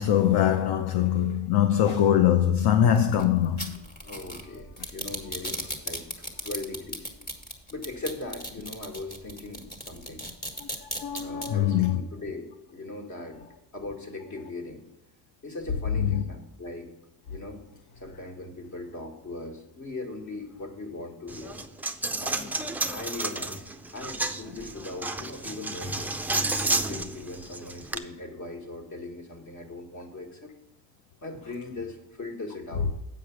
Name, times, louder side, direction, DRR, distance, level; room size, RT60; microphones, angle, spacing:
voice 1, 0.0-3.8 10.6-12.0 16.0-16.2, left 10 dB, 60° left, 0.7 m, -23 dB
sound 1, 3.0-11.5, right 1 dB, 20° left, 1.6 m, -36 dB
voice 2, 4.0-6.1 6.4-7.1 7.7-10.2 11.1-13.4 13.7-14.8 15.4-16.9 17.3-17.6 18.0-21.6 22.2-22.5 22.9-23.7 23.9-26.1 26.7-30.5 31.2-32.9, left 2 dB, 40° left, 1.6 m, -39 dB
Coin (dropping), 21.3-28.0, right 2 dB, 5° right, 0.3 m, -31 dB
8.3 x 4.9 x 6.0 m
cardioid pair, 115°, 44 cm